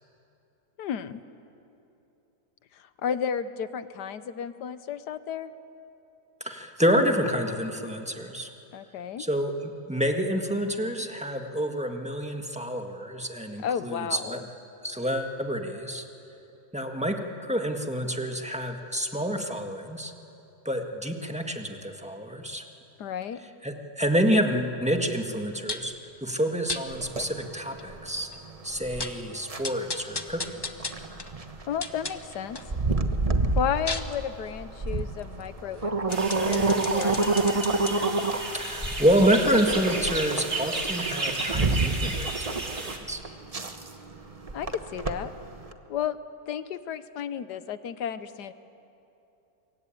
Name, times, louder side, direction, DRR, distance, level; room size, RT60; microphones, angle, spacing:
voice 1, 0.8-1.2 2.7-5.5 8.7-9.2 13.6-14.4 23.0-23.4 31.7-32.6 33.5-37.5 44.5-45.3 45.9-46.2 46.5-48.5, left 8 dB, 80° left, 13 dB, 1.4 m, -33 dB
voice 2, 6.4-8.5 9.2-14.4 14.8-16.0 16.7-20.1 20.6-22.6 23.6-25.9 26.2-28.3 28.6-30.6 38.5-43.2, equal, 5° right, 4 dB, 1.5 m, -28 dB
sound 1, 25.7-26.0 26.7-26.8 27.4-27.5 27.8-27.9 28.3-28.4 28.7-29.3 29.6-32.7 33.1-37.9 38.5-41.2 41.6-41.7, left 3 dB, 20° left, 0.8 m, -37 dB
sound 2, 26.9-45.7, right 3 dB, 25° right, 1.0 m, -29 dB
sound 3, 36.1-43.0, right 3 dB, 40° right, 2.5 m, -34 dB
24.5 x 23.5 x 9.1 m, 2.9 s
omnidirectional pair, 1.8 m